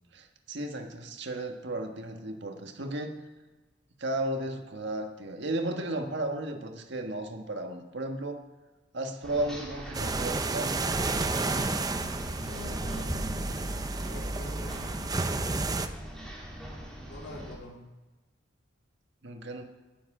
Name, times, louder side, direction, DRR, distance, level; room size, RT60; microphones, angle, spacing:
voice 1, 0.1-3.2 4.0-8.4 8.9-10.7 19.2-19.6, right 1 dB, 65° right, 4 dB, 1.4 m, -34 dB
sound 1, 9.2-17.6, equal, 5° left, 3.3 m, -42 dB
sound 2, 9.9-15.9, right 3 dB, 20° right, 0.6 m, -31 dB
voice 2, 12.3-15.1 17.1-17.8, equal, 60° left, 0 dB, 2.7 m, -43 dB
18.0 x 7.7 x 4.9 m, 1.2 s
head